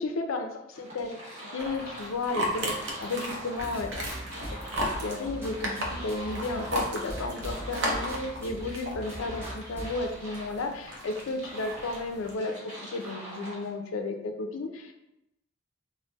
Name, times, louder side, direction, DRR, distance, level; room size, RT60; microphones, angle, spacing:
voice 1, 0.0-15.0, left 3 dB, 90° left, 5 dB, 0.4 m, -33 dB
sound 1, 0.7-13.7, equal, 35° right, 0.9 m, -44 dB
sound 2, 1.6-12.3, equal, 70° right, 0.6 m, -36 dB
sound 3, 3.6-10.1, equal, 10° right, 0.7 m, -40 dB
3.8 x 2.0 x 2.3 m, 0.87 s
head